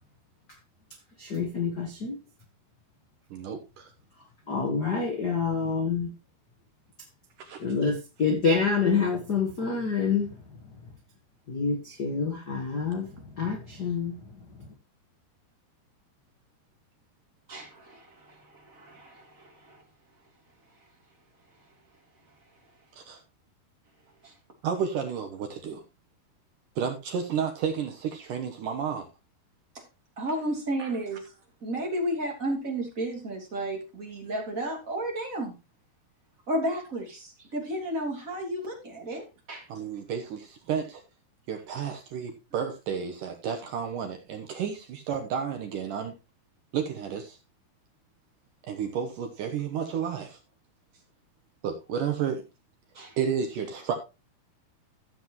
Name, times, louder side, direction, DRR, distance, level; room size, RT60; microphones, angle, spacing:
voice 1, 1.2-2.2 4.5-6.1 7.6-10.4 11.5-14.2 14.6-14.7, left 5 dB, 60° left, 1.0 m, -27 dB
voice 2, 3.3-3.9 7.4-7.6 22.9-23.2 24.6-25.8 26.8-29.1 30.8-30.9 39.7-41.0 41.5-46.2 46.7-47.4 48.6-50.4 51.6-52.4 53.2-54.0, right 7 dB, 65° right, 2.3 m, -31 dB
voice 3, 17.5-19.8 24.2-24.3 30.2-31.3 31.6-35.5 36.5-39.7 52.9-53.2, right 1 dB, 20° right, 2.9 m, -33 dB
14.5 x 7.5 x 3.0 m
omnidirectional pair, 4.5 m